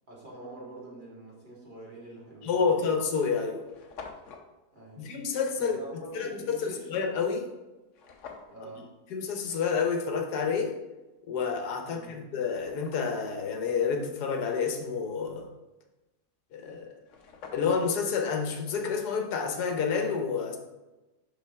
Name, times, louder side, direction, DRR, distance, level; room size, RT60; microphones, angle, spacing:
voice 1, 0.1-2.8 4.7-5.0 5.6-6.9 8.5-8.9 11.9-12.1, right 2 dB, 30° right, -6 dB, 1.9 m, -45 dB
sound 1, 2.1-2.3 3.0-3.1 3.3-3.4 3.6-4.5 7.9-8.6 11.5-11.6 12.1-13.3 16.6-16.7 17.0-18.0, left 5 dB, 60° left, 1.0 m, -47 dB
voice 2, 2.4-3.6 5.0-5.8 6.1-7.5 9.1-10.8 11.3-15.5 16.5-16.9 17.5-20.6, left 5 dB, 80° left, 3 dB, 1.4 m, -29 dB
5.9 x 5.6 x 3.5 m, 1.1 s
omnidirectional pair, 1.7 m